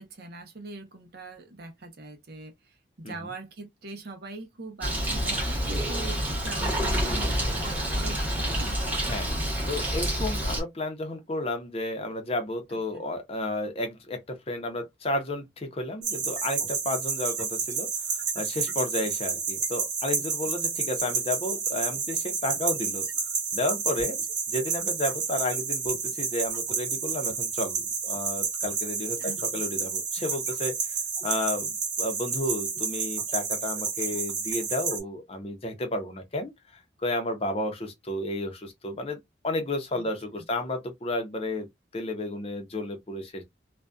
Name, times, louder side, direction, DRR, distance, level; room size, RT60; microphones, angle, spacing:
voice 1, 0.0-8.8 12.7-12.8 29.2-29.8 40.0-40.1, right 3 dB, 55° right, 0.7 m, -42 dB
Bird, 4.8-10.6, equal, 10° right, 0.8 m, -28 dB
voice 2, 9.7-23.1 23.5-24.2 24.5-31.0 31.2-31.7 32.0-36.5 37.0-39.2 39.4-41.7 41.9-43.4, left 1 dB, 30° left, 0.6 m, -32 dB
sound 1, 16.0-35.0, right 5 dB, 70° right, 1.1 m, -30 dB
2.5 x 2.2 x 2.2 m
head